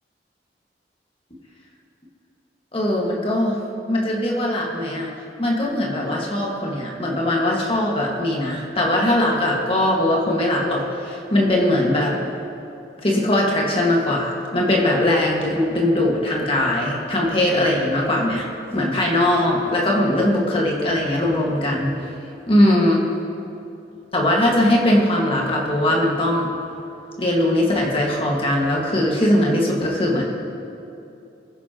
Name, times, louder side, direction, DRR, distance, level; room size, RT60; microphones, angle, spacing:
voice 1, 2.7-3.6 3.9-5.1 5.4-12.2 13.0-21.9 22.5-23.1 24.1-26.5 27.2-30.2, left 1 dB, 30° left, -2 dB, 1.8 m, -20 dB
21.0 x 10.0 x 3.0 m, 2.8 s
head